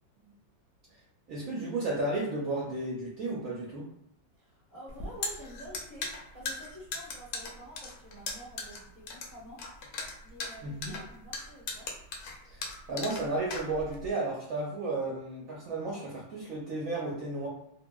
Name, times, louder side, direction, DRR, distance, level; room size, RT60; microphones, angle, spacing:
voice 1, 1.3-3.9 10.6-11.0 12.4-17.5, right 2 dB, 65° right, -5 dB, 0.9 m, -33 dB
voice 2, 4.4-9.6 10.2-11.9, equal, 10° left, -8 dB, 1.1 m, -49 dB
sound 1, 4.9-14.1, left 3 dB, 70° left, 0.9 m, -38 dB
2.8 x 2.5 x 2.2 m, 0.75 s
omnidirectional pair, 2.0 m